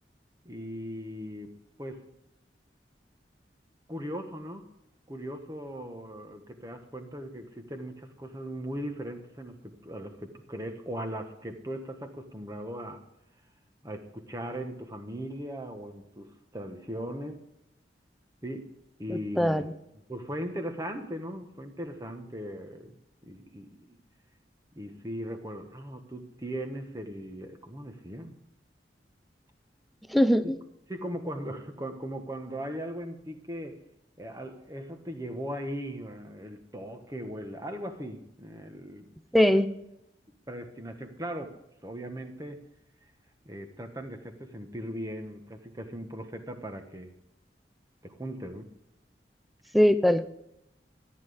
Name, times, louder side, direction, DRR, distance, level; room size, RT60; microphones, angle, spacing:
voice 1, 0.4-1.5 1.8-2.1 3.9-4.6 5.1-13.0 13.8-17.4 18.4-18.7 19.0-19.7 20.1-24.0 24.7-28.4 30.4-30.5 30.9-33.8 34.2-39.1 40.5-41.6 41.8-42.6 43.4-47.1 48.0-48.7, equal, 20° right, 6 dB, 1.4 m, -38 dB
voice 2, 19.1-19.7 30.1-30.6 39.3-39.7 49.7-50.3, equal, ahead, 12 dB, 0.6 m, -22 dB
13.5 x 9.7 x 5.1 m, 0.81 s
head